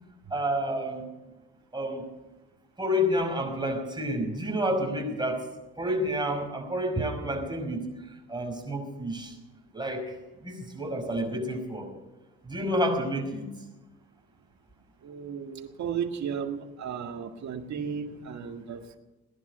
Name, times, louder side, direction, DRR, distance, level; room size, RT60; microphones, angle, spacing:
voice 1, 0.3-1.1 1.7-2.1 2.8-5.4 5.8-7.9 8.3-9.3 9.7-10.0 10.4-11.9 12.5-13.5, equal, 15° right, 2 dB, 5.5 m, -29 dB
voice 2, 15.0-19.0, right 7 dB, 65° right, 4 dB, 1.9 m, -34 dB
18.5 x 11.0 x 6.9 m, 1.1 s
cardioid pair, 90°, 30 cm